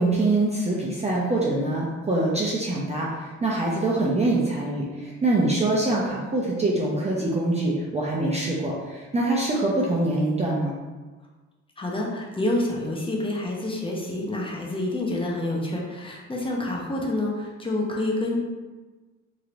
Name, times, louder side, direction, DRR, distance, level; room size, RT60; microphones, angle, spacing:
voice 1, 0.0-10.7, right 2 dB, 20° right, -5 dB, 0.6 m, -24 dB
voice 2, 11.8-18.4, left 1 dB, 15° left, -2 dB, 0.7 m, -28 dB
3.1 x 2.8 x 2.5 m, 1.3 s
cardioid pair, 90°, 30 cm